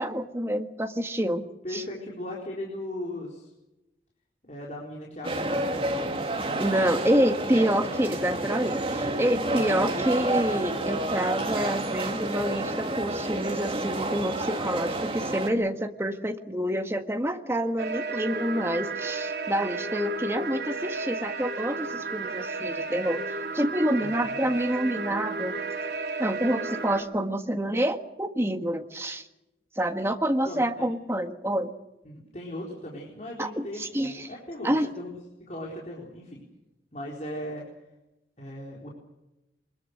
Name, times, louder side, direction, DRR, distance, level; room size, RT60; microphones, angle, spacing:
voice 1, 0.0-1.5 1.7-1.8 6.6-23.2 23.5-25.5 26.2-29.3 29.8-31.7 33.4-34.3 34.6-34.9, right 1 dB, 15° right, 6 dB, 1.5 m, -27 dB
voice 2, 1.6-3.5 4.4-5.9 6.7-7.1 24.0-24.6 30.4-30.9 32.0-35.1 35.4-36.4 36.9-37.7 38.4-38.9, left 1 dB, 40° left, -3 dB, 4.2 m, -38 dB
sound 1, 5.2-15.5, right 2 dB, 30° right, 2.6 m, -30 dB
sound 2, 17.8-27.0, right 3 dB, 70° right, 3.7 m, -33 dB
24.0 x 21.5 x 6.5 m, 0.95 s
head